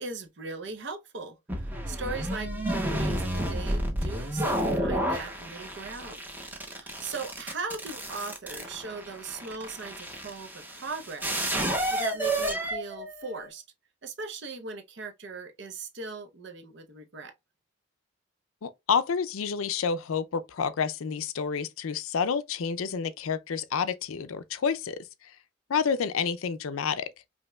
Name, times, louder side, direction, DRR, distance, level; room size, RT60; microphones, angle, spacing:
voice 1, 0.0-6.2 6.6-11.5 11.9-13.6 14.0-17.3, right 3 dB, 60° right, 0.7 m, -39 dB
sound 1, 1.5-13.5, right 1 dB, 10° right, 0.7 m, -31 dB
voice 2, 18.6-25.1 25.7-27.1, left 6 dB, 90° left, 0.5 m, -29 dB
5.2 x 2.8 x 2.2 m
head